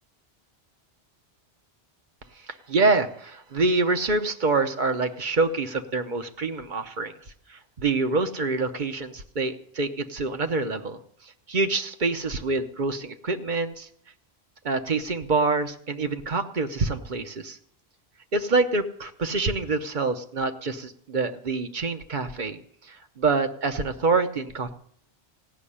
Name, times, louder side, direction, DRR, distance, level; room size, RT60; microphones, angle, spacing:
voice 1, 2.7-7.1 7.5-11.0 11.2-13.9 14.6-17.6 18.3-22.6 22.8-24.7, right 3 dB, 50° right, 8 dB, 1.0 m, -26 dB
15.5 x 6.4 x 9.9 m, 0.66 s
omnidirectional pair, 1.1 m